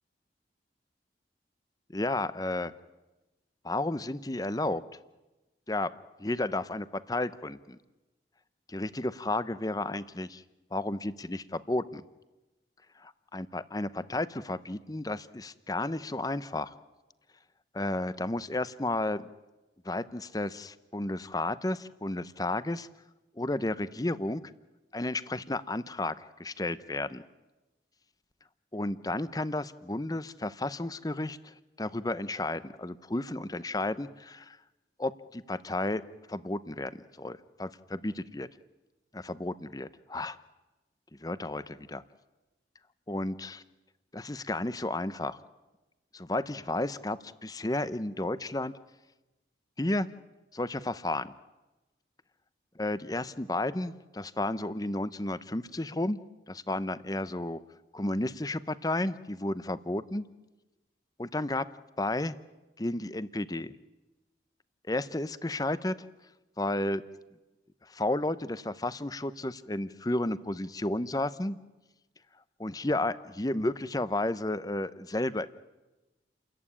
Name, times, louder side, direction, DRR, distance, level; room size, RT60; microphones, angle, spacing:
voice 1, 1.9-2.7 3.6-4.8 5.7-5.9 6.2-7.8 8.7-10.4 10.7-12.1 13.0-16.7 17.7-19.3 19.8-22.9 23.4-24.4 24.9-27.2 28.7-34.6 35.0-36.0 36.3-38.5 39.1-40.4 41.2-42.0 43.1-43.6 44.1-45.4 46.1-48.7 49.8-50.1 50.5-51.3 52.8-56.2 56.5-57.6 57.9-60.3 61.2-61.7 62.0-62.3 62.8-63.8 64.9-66.1 66.6-67.0 67.8-71.6 72.6-75.5, left 2 dB, 20° left, 15 dB, 0.8 m, -32 dB
30.0 x 14.5 x 9.9 m, 1.1 s
head